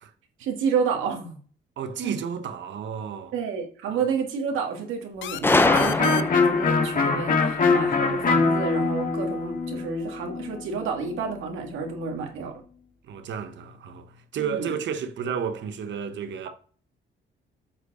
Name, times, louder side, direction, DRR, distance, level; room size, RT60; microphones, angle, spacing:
voice 1, 0.4-1.4 2.0-2.2 3.3-12.6 14.4-14.7, right 5 dB, 85° right, 1.9 m, -30 dB
voice 2, 1.8-3.3 3.9-4.0 13.0-16.5, right 7 dB, 65° right, 1.1 m, -32 dB
sound 1, 5.2-8.6, left 12 dB, 75° left, 0.6 m, -37 dB
Gunshot gunfire, 5.4-6.6, left 2 dB, 10° left, 0.5 m, -22 dB
Electric guitar, 5.6-11.3, left 4 dB, 45° left, 1.8 m, -23 dB
7.7 x 4.6 x 4.2 m
cardioid pair, 90°, 20 cm